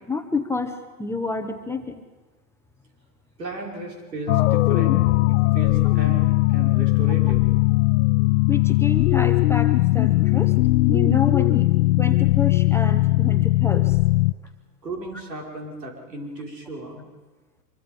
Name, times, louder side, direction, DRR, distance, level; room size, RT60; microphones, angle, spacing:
voice 1, 0.1-2.0 5.8-5.9 8.5-10.5 10.8-14.0, left 4 dB, 5° left, 5 dB, 0.8 m, -28 dB
voice 2, 3.4-5.0 5.5-7.5 14.8-17.0, right 2 dB, 85° right, 1 dB, 5.3 m, -34 dB
sound 1, 4.3-14.3, left 19 dB, 55° left, 0.6 m, -19 dB
24.5 x 23.5 x 5.3 m, 1.3 s
hypercardioid pair, 120°, 48 cm